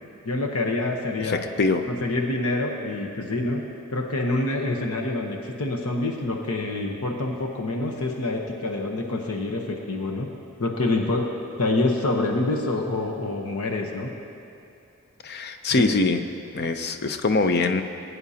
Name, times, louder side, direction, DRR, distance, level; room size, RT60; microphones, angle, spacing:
voice 1, 0.2-1.4 1.9-3.6 3.9-10.3 10.6-11.3 11.6-14.1 15.7-15.8, left 2 dB, 80° left, 1 dB, 1.0 m, -26 dB
voice 2, 1.2-1.9 15.2-16.2 16.5-17.8, left 3 dB, 50° left, 8 dB, 0.6 m, -23 dB
20.5 x 9.8 x 2.8 m, 2.8 s
head